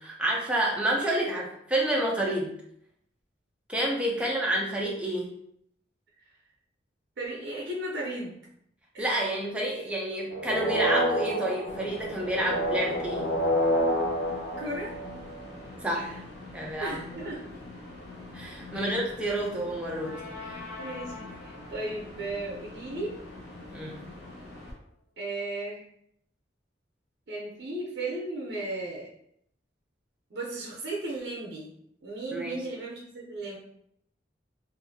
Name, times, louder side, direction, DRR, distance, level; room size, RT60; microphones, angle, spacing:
voice 1, 0.0-2.5 3.7-5.3 9.0-13.3 15.8-16.2 16.5-17.0 18.3-20.6 23.7-24.1 32.3-32.6, right 1 dB, 5° right, -3 dB, 0.5 m, -29 dB
voice 2, 7.2-8.4 8.9-9.2 14.6-15.0 16.8-17.6 18.7-19.0 20.8-23.2 25.2-25.8 27.3-29.1 30.3-31.7 32.0-33.6, right 2 dB, 65° right, -3 dB, 0.6 m, -35 dB
sound 1, 10.3-15.6 19.9-21.6, equal, 90° left, 1.5 m, -30 dB
sound 2, 11.7-24.7, left 2 dB, 65° left, 0.7 m, -45 dB
2.6 x 2.4 x 2.6 m, 0.71 s
head